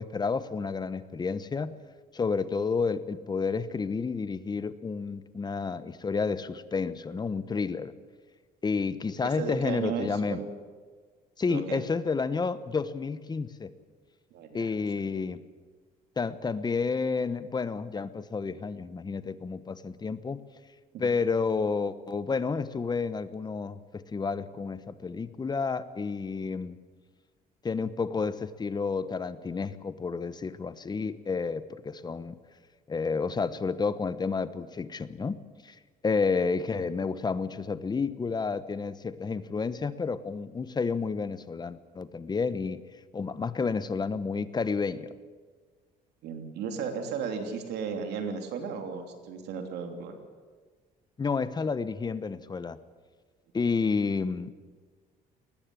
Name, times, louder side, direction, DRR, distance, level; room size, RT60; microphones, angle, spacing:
voice 1, 0.0-1.7 2.1-7.9 8.6-10.4 11.4-13.7 14.5-15.4 16.2-20.4 21.0-26.8 27.6-32.3 32.9-35.7 36.0-42.8 43.1-45.1 51.2-52.8 53.5-54.5, left 4 dB, 25° left, 15 dB, 1.1 m, -30 dB
voice 2, 9.2-10.5 11.5-11.8 14.3-14.7 15.0-15.1 20.9-21.1 46.2-50.2, right 6 dB, 80° right, 5 dB, 3.1 m, -35 dB
19.5 x 14.5 x 9.9 m, 1.5 s
cardioid pair, 110°, 17 cm